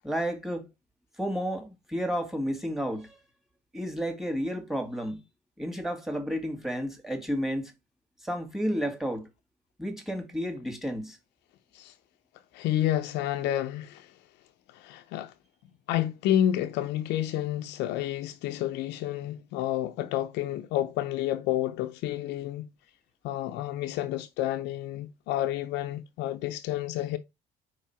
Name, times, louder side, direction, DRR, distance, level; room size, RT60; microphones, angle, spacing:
voice 1, 0.0-0.7 1.2-3.2 3.7-5.2 5.6-7.7 8.2-9.3 9.8-11.2, equal, ahead, 2.1 m, -31 dB
voice 2, 12.5-14.1 14.7-15.3 15.9-22.7 23.2-27.2, left 12 dB, 80° left, 0.6 m, -30 dB
4.7 x 4.5 x 4.5 m
supercardioid pair, 80°, 18 cm